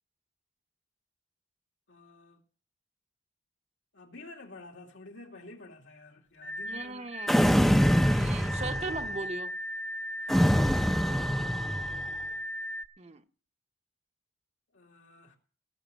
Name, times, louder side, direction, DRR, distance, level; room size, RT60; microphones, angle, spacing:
voice 1, 1.9-2.4 3.9-7.1 10.2-11.7 14.7-15.4, left 2 dB, 80° left, 2.5 m, -50 dB
sound 1, 6.4-12.9, equal, 70° right, 1.3 m, -37 dB
voice 2, 6.6-7.6 8.1-9.5 13.0-13.2, right 3 dB, 35° right, 0.8 m, -39 dB
sound 2, 7.3-9.2 10.3-12.1, equal, ahead, 0.5 m, -25 dB
17.5 x 6.5 x 7.2 m
head